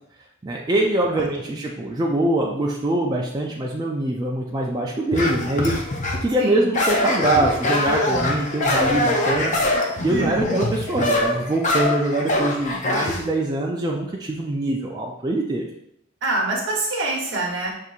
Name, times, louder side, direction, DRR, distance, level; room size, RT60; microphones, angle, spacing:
voice 1, 0.4-5.7 6.2-9.6 10.0-15.7, right 2 dB, 20° right, -2 dB, 0.3 m, -23 dB
voice 2, 1.1-1.5 6.4-6.7 10.1-10.5 16.2-17.7, right 2 dB, 60° right, -2 dB, 1.0 m, -26 dB
sound 1, 5.1-6.3 6.7-13.2, left 2 dB, 35° left, 0.5 m, -23 dB
6.1 x 2.7 x 2.4 m, 0.76 s
head